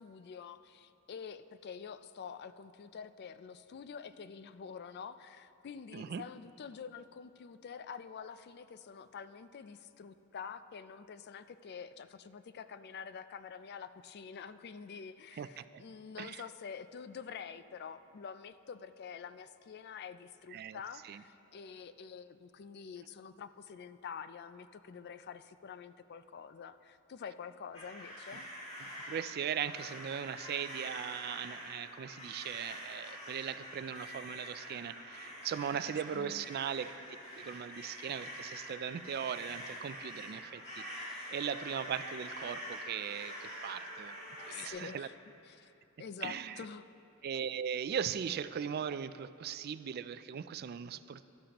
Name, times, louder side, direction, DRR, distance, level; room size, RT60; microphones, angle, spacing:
voice 1, 0.0-28.5 35.7-36.5 44.4-45.1 45.5-45.7 46.0-46.8, left 6 dB, 50° left, 12 dB, 0.4 m, -47 dB
voice 2, 5.9-6.2 15.3-15.8 16.2-16.4 20.5-21.2 28.8-36.9 37.3-40.8 41.3-44.2 44.4-45.1 46.2-46.6 47.2-51.3, right 8 dB, 50° right, 14 dB, 0.3 m, -39 dB
sound 1, 27.7-44.7, equal, 30° left, 2.7 m, -46 dB
16.5 x 11.5 x 3.0 m, 2.8 s
head